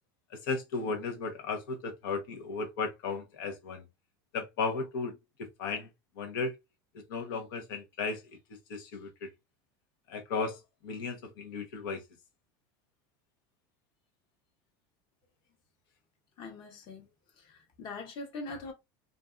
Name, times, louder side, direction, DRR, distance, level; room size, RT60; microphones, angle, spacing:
voice 1, 0.3-3.8 4.3-5.2 5.6-5.9 6.2-6.5 7.1-8.2 8.7-9.3 10.1-12.0, left 4 dB, 85° left, 0.9 m, -35 dB
voice 2, 16.4-17.1 17.4-18.7, left 3 dB, 50° left, 1.0 m, -42 dB
2.5 x 2.4 x 2.3 m
supercardioid pair, 130°, 11 cm